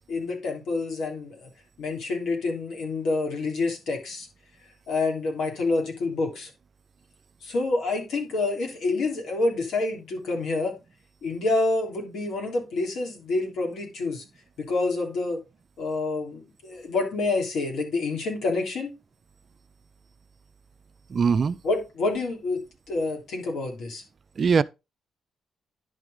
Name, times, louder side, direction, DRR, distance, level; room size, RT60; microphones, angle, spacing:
voice 1, 0.1-1.5 1.8-4.3 4.9-6.5 7.4-10.7 11.2-14.2 14.6-15.4 15.8-18.9 21.6-22.6 22.9-24.0, left 3 dB, 75° left, 3.1 m, -27 dB
voice 2, 21.1-21.6 24.4-24.6, right 5 dB, 45° right, 0.4 m, -21 dB
11.0 x 4.7 x 3.9 m
cardioid pair, 90°, 0 cm